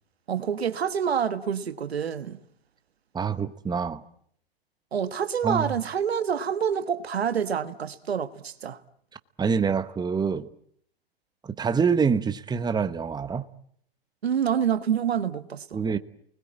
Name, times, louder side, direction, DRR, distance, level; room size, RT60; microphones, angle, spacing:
voice 1, 0.3-2.4 4.9-8.8 14.2-15.8, right 8 dB, 90° right, 1.4 m, -27 dB
voice 2, 3.1-4.0 5.4-5.7 9.4-10.5 11.4-13.4 15.7-16.0, right 6 dB, 15° right, 1.1 m, -26 dB
29.0 x 21.0 x 8.7 m
hypercardioid pair, 110°, 30 cm